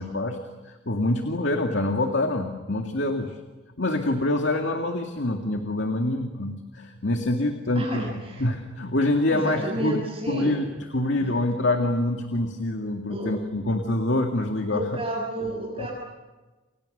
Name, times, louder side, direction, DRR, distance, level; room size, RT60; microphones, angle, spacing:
voice 1, 0.0-3.4 3.8-8.1 8.4-14.9 15.8-15.9, left 2 dB, 70° left, 4 dB, 2.2 m, -26 dB
voice 2, 7.7-8.5 9.3-10.6 13.1-13.3 14.7-15.9, right 1 dB, 30° right, -4 dB, 6.6 m, -31 dB
30.0 x 28.0 x 6.7 m, 1.2 s
head